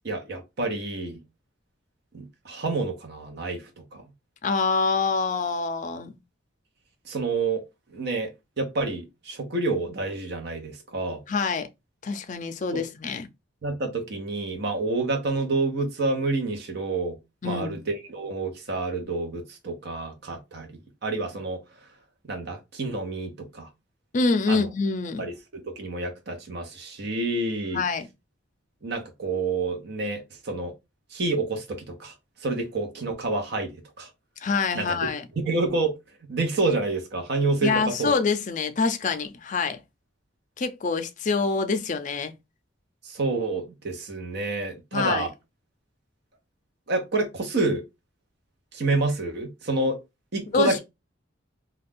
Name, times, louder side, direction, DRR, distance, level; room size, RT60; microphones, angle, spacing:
voice 1, 0.0-1.2 2.1-3.6 3.9-4.0 7.1-7.6 7.9-8.3 8.6-11.2 12.7-12.8 13.6-17.2 17.4-20.7 21.0-21.6 22.3-23.7 24.5-24.7 25.2-27.8 28.8-30.7 31.1-32.1 32.4-34.1 34.7-35.0 35.4-35.9 36.3-38.2 43.0-45.3 46.9-47.8 48.7-50.0 50.3-50.8, right 3 dB, 55° right, 0.7 m, -28 dB
voice 2, 4.4-6.2 11.3-11.7 12.0-13.3 17.4-17.8 24.1-25.3 27.7-28.1 34.4-35.2 37.6-39.8 40.6-42.3 44.9-45.3 50.5-50.8, left 4 dB, 40° left, 0.4 m, -26 dB
2.5 x 2.3 x 3.5 m
head